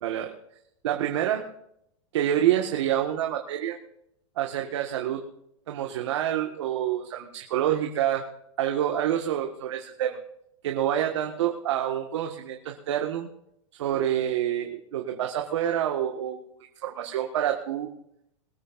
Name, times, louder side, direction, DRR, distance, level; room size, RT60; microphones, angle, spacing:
voice 1, 0.0-0.3 0.8-1.5 2.1-3.8 4.4-5.2 5.7-8.3 8.6-10.2 10.6-13.3 13.8-16.4 16.8-17.9, right 11 dB, 70° right, 3 dB, 1.7 m, -27 dB
22.0 x 14.0 x 2.6 m, 0.75 s
supercardioid pair, 155°, 16 cm